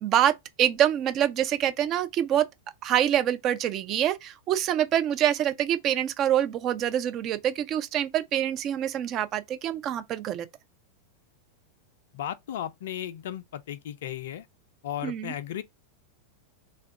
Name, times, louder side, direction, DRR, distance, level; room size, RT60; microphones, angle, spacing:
voice 1, 0.0-2.5 2.8-10.5 15.0-15.3, right 11 dB, 35° right, 0.4 m, -25 dB
voice 2, 12.1-14.5 14.8-15.6, left 11 dB, 55° left, 0.3 m, -35 dB
3.3 x 2.2 x 3.5 m
figure-of-eight pair, 90°, 0 cm